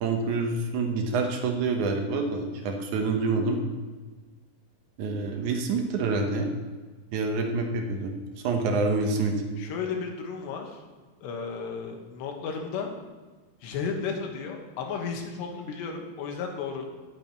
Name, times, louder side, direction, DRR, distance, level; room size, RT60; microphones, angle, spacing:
voice 1, 0.0-3.6 5.0-6.5 7.1-8.1 8.4-9.4, right 3 dB, 75° right, 3 dB, 1.8 m, -27 dB
voice 2, 9.6-10.8 11.2-12.9 13.6-16.9, left 5 dB, 85° left, 2 dB, 3.5 m, -33 dB
18.0 x 8.7 x 3.0 m, 1.3 s
omnidirectional pair, 4.9 m